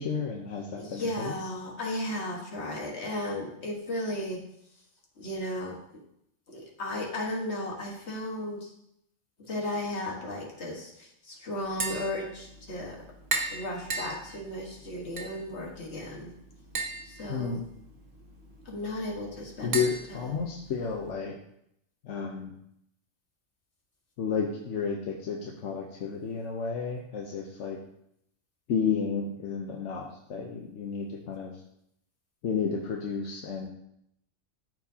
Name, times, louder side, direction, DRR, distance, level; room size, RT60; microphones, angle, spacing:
voice 1, 0.0-1.5 17.3-17.6 19.6-21.3 22.0-22.5 24.2-27.8 28.7-31.6 32.4-33.7, left 6 dB, 85° left, 0 dB, 1.2 m, -32 dB
voice 2, 0.8-4.4 5.2-5.8 6.5-8.7 9.4-13.0 13.5-16.3 17.1-17.6 18.7-19.8 20.1-20.2, left 1 dB, 65° left, -1 dB, 1.8 m, -35 dB
Tap, 11.6-21.1, right 3 dB, 50° right, 1.2 m, -38 dB
13.0 x 4.6 x 2.8 m, 0.76 s
omnidirectional pair, 1.2 m